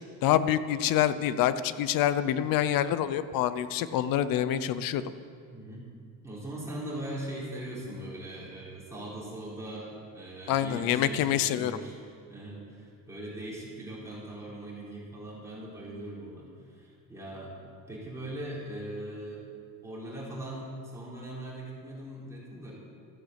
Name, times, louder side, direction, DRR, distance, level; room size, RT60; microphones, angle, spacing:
voice 1, 0.2-5.0 10.5-11.8, left 11 dB, 85° left, 14 dB, 0.7 m, -26 dB
voice 2, 5.5-5.9 6.2-17.5 17.9-19.4 19.8-22.7, right 1 dB, 10° right, -6 dB, 4.2 m, -40 dB
14.0 x 10.5 x 8.2 m, 2.3 s
cardioid pair, 150°, 33 cm